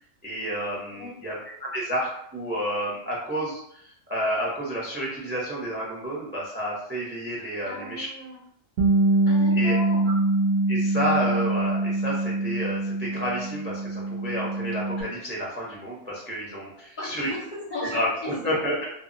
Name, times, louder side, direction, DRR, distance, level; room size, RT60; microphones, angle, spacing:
voice 1, 0.2-8.1 9.5-9.7 10.7-17.3 17.8-18.9, equal, 15° right, -4 dB, 0.3 m, -30 dB
voice 2, 7.6-8.4 9.3-10.1 17.0-18.5, left 2 dB, 50° left, -5 dB, 0.6 m, -35 dB
Bass guitar, 8.8-15.0, right 2 dB, 60° right, 0.6 m, -24 dB
2.1 x 2.0 x 3.7 m, 0.71 s
omnidirectional pair, 1.4 m